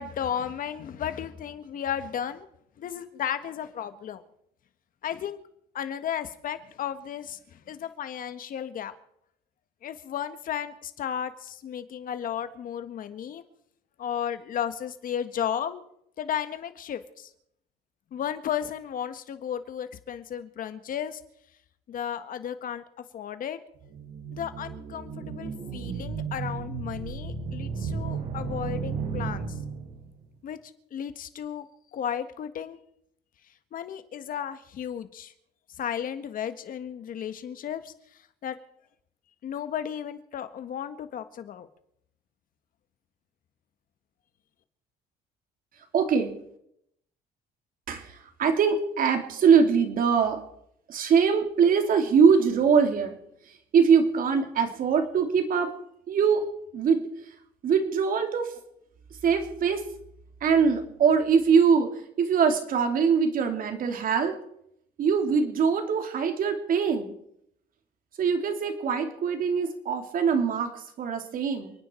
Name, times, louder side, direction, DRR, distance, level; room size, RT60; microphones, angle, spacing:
voice 1, 0.0-2.5 2.8-4.2 5.0-5.4 5.7-8.9 9.8-13.4 14.0-15.8 16.2-17.3 18.1-21.2 21.9-22.8 23.1-23.6 24.3-29.6 30.4-30.6 30.9-32.8 33.7-35.3 35.7-37.9 38.4-38.6 39.4-41.7, left 9 dB, 55° left, 10 dB, 1.6 m, -34 dB
sound 1, 23.8-30.1, right 5 dB, 85° right, 5.7 m, -34 dB
voice 2, 45.9-46.3 47.9-50.4 50.9-53.2 53.5-55.7 56.1-56.4 56.7-57.0 57.6-58.5 59.2-59.8 60.4-61.9 62.2-64.3 65.0-67.1 68.2-71.7, right 6 dB, 55° right, 5 dB, 2.9 m, -23 dB
29.0 x 9.7 x 4.6 m, 0.75 s
cardioid pair, 110°, 17 cm